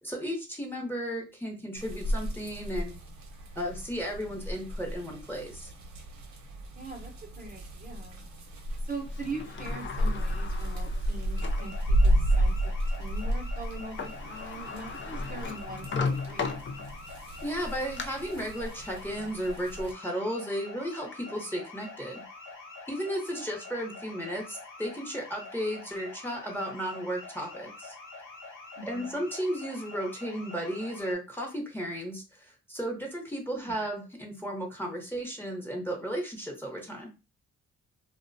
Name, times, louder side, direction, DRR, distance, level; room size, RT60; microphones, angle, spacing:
voice 1, 0.0-2.9 3.6-5.7 17.4-22.2 22.9-27.9 28.9-37.1, equal, 5° left, 0 dB, 0.9 m, -34 dB
sound 1, 1.8-19.9, equal, 60° right, 0.8 m, -32 dB
voice 2, 6.8-8.2 8.9-12.7 13.0-16.4 28.8-29.2 33.5-33.7, right 3 dB, 25° right, 0 dB, 0.7 m, -42 dB
Sliding door, 9.1-11.7 12.3-12.4 13.7-13.8 14.0-17.2 17.6-18.0, left 5 dB, 35° left, 0.5 m, -36 dB
sound 2, 11.3-31.2, left 3 dB, 75° left, 1.1 m, -46 dB
2.4 x 2.2 x 2.6 m, 0.29 s
cardioid pair, 75°, 32 cm